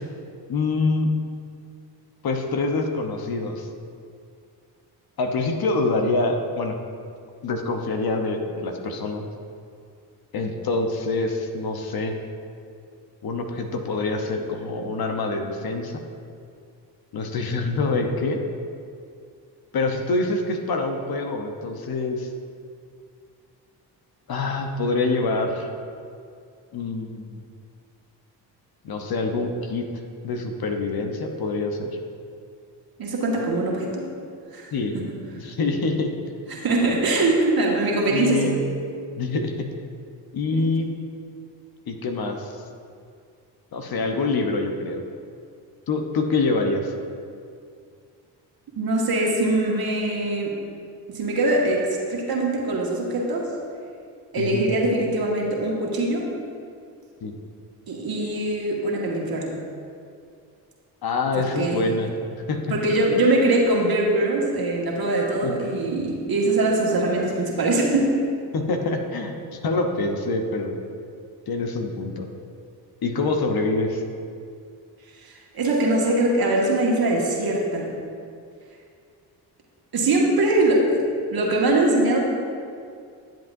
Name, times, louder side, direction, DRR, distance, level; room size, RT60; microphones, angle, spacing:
voice 1, 0.5-1.1 2.2-3.7 5.2-6.8 7.4-9.2 10.3-12.1 13.2-16.0 17.1-18.4 19.7-22.3 24.3-25.7 26.7-27.5 28.8-29.9 30.2-31.9 34.7-34.9 35.3-36.1 38.1-38.6 39.2-39.7 40.3-40.9 41.9-42.6 43.7-45.0 45.9-46.9 54.4-54.6 57.2-57.3 61.0-62.1 62.5-62.6 65.4-65.5 68.5-70.8 71.5-72.3 73.0-74.0, left 3 dB, 55° left, 4 dB, 1.0 m, -25 dB
voice 2, 33.0-34.1 34.5-35.1 36.5-38.5 48.8-50.6 51.1-53.5 54.3-56.3 57.9-59.5 61.3-61.9 62.7-68.2 75.2-77.9 79.9-81.0 81.3-82.2, right 2 dB, 50° right, -2 dB, 1.9 m, -22 dB
10.5 x 7.5 x 2.7 m, 2.3 s
supercardioid pair, 50°, 44 cm